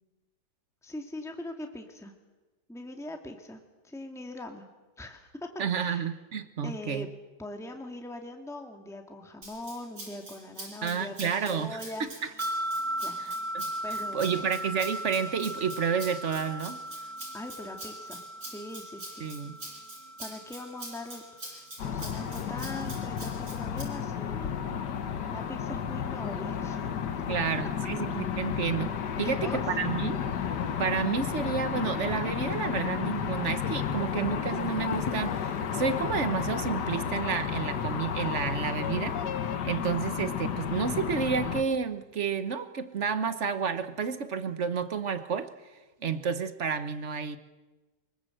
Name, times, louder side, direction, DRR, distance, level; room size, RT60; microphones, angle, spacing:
voice 1, 0.8-2.1 2.7-4.7 5.0-5.3 5.7-6.1 6.6-7.1 7.4-12.4 13.0-13.2 13.8-14.5 17.3-19.3 20.2-24.5 25.3-26.8 29.2-29.6, left 1 dB, ahead, 3 dB, 2.0 m, -41 dB
voice 2, 5.6-7.1 10.8-12.1 13.2-13.7 14.1-16.8 19.2-19.6 27.3-28.9 29.2-30.2 30.8-39.2 39.6-45.5 46.0-47.4, right 6 dB, 50° right, 11 dB, 1.3 m, -30 dB
Rattle (instrument), 9.4-23.8, right 1 dB, 75° right, 7.3 m, -44 dB
sound 1, 12.4-21.7, right 1 dB, 20° right, 1.0 m, -37 dB
sound 2, 21.8-41.6, left 8 dB, 80° left, 1.8 m, -32 dB
24.5 x 22.5 x 7.9 m, 1.2 s
omnidirectional pair, 1.8 m